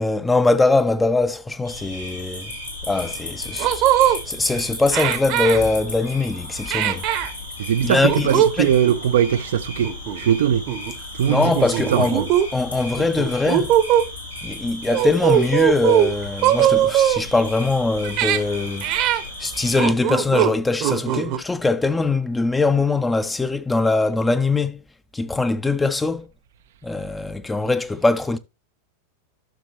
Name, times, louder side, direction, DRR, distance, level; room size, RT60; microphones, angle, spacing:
voice 1, 0.0-2.5 2.9-7.0 7.8-8.7 11.3-12.2 12.5-13.7 14.4-18.9 19.4-24.8 25.1-26.3 26.8-28.4, left 3 dB, 10° left, 0.7 m, -22 dB
sound 1, 1.6-19.9, left 2 dB, 85° left, 3.7 m, -35 dB
sound 2, 3.1-3.2 3.6-4.2 4.9-5.6 6.7-7.3 8.0-8.5 8.8-9.0 9.8-10.4 10.7-10.9 11.6-12.5 13.0-14.1 14.9-16.1 16.4-17.2 18.0-18.4 18.8-19.2 19.8-20.5 20.8-21.4, right 12 dB, 40° right, 1.0 m, -20 dB
voice 2, 7.6-9.9 10.2-10.6 11.2-11.5 11.9-12.3, right 9 dB, 60° right, 0.6 m, -20 dB
11.5 x 6.8 x 2.9 m
figure-of-eight pair, 90°, 0 cm